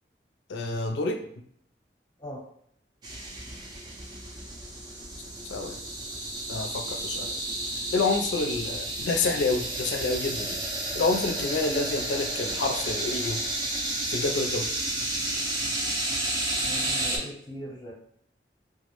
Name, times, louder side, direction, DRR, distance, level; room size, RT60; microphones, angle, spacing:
voice 1, 0.5-1.2 5.5-5.8 6.5-7.3 7.9-10.6 10.9-13.4 14.1-14.7, left 3 dB, 90° left, 5 dB, 0.4 m, -28 dB
sound 1, 3.0-17.2, right 1 dB, 25° right, 0.4 m, -31 dB
voice 2, 16.6-17.9, equal, 25° left, -3 dB, 0.6 m, -40 dB
2.2 x 2.0 x 2.9 m, 0.68 s
head